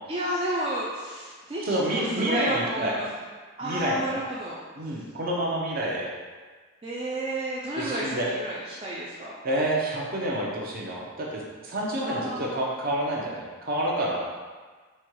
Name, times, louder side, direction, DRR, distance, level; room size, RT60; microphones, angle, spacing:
voice 1, 0.1-3.1 3.6-4.6 6.8-9.4 12.0-12.6, right 1 dB, 25° right, -7 dB, 0.4 m, -31 dB
voice 2, 1.7-2.9 3.6-4.2 4.8-6.1 7.8-8.3 9.4-14.2, right 1 dB, 45° right, -3 dB, 0.8 m, -28 dB
4.3 x 2.3 x 4.6 m, 1.4 s
head